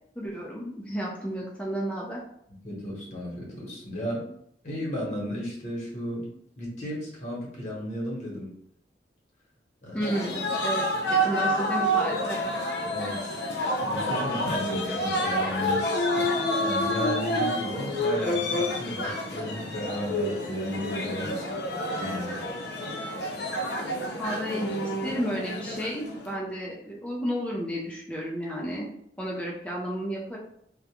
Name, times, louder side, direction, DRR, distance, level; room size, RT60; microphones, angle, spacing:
voice 1, 0.2-2.2 9.9-12.5 24.2-28.9 29.2-30.4, equal, 5° left, -4 dB, 0.4 m, -32 dB
voice 2, 2.6-4.3 4.6-6.3 6.6-8.5 9.8-10.1 12.8-21.5 22.0-22.3, equal, 45° left, -4 dB, 1.0 m, -35 dB
sound 1, 10.0-26.3, equal, 70° left, 0.6 m, -28 dB
2.4 x 2.1 x 2.8 m, 0.71 s
head